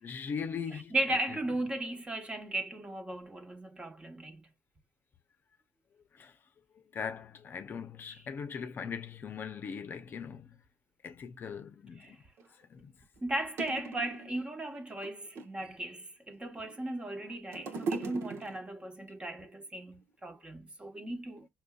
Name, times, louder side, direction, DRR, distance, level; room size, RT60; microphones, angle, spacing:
voice 1, 0.0-0.9 6.2-6.3 6.9-10.6 11.0-12.2 12.7-12.9, left 6 dB, 50° left, 0.6 m, -40 dB
voice 2, 0.7-4.4 8.1-8.2 12.0-12.2 13.2-21.5, right 1 dB, 25° right, 1.1 m, -36 dB
sound 1, 12.4-12.5 13.2-13.3 13.6-14.4 14.9-15.7 16.3-17.0 17.2-18.8 19.6-19.7, right 4 dB, 75° right, 1.0 m, -39 dB
5.8 x 2.5 x 2.3 m
cardioid pair, 95°, 4 cm